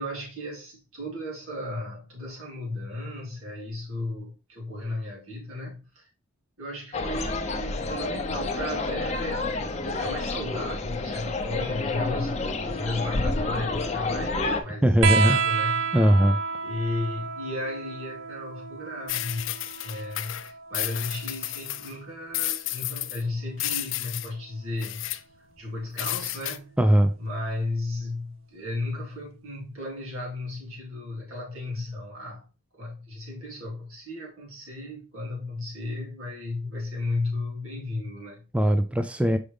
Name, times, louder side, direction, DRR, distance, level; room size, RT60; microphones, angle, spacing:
voice 1, 0.0-6.1 6.6-9.5 9.8-15.9 16.6-25.1 25.6-26.8 27.2-32.5 32.7-38.5, left 2 dB, 90° right, 3.7 m, -34 dB
sound 1, 6.9-14.6, left 3 dB, 30° left, 0.8 m, -29 dB
voice 2, 14.8-15.4 15.9-16.4 26.8-27.1 38.5-39.4, right 1 dB, 5° right, 0.3 m, -20 dB
sound 2, 15.0-22.1 23.5-24.3 25.6-25.7, right 5 dB, 70° right, 0.6 m, -31 dB
sound 3, 19.1-22.0 22.3-23.2 23.6-24.3 24.8-25.2 26.0-26.6, left 15 dB, 65° left, 0.5 m, -32 dB
6.2 x 5.1 x 3.4 m
head